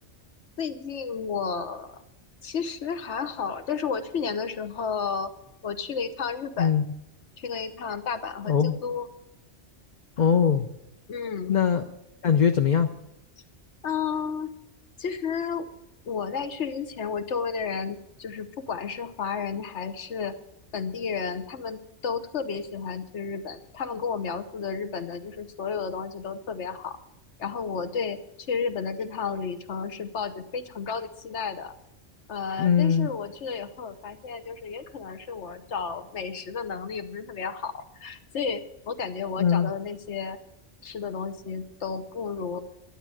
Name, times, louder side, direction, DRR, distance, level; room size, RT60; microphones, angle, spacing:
voice 1, 0.6-2.0 2.4-5.3 5.6-6.7 7.4-9.1 11.1-11.5 13.8-14.5 15.0-15.7 16.1-20.3 20.7-27.0 27.4-28.2 28.5-31.7 32.3-40.4 40.8-42.6, left 6 dB, 80° left, 9 dB, 1.3 m, -32 dB
voice 2, 8.5-8.8 10.2-10.7 11.5-11.8 12.2-12.9 32.6-33.1 39.4-39.7, left 7 dB, 45° left, 5 dB, 0.7 m, -21 dB
12.5 x 9.3 x 7.7 m, 0.85 s
omnidirectional pair, 1.2 m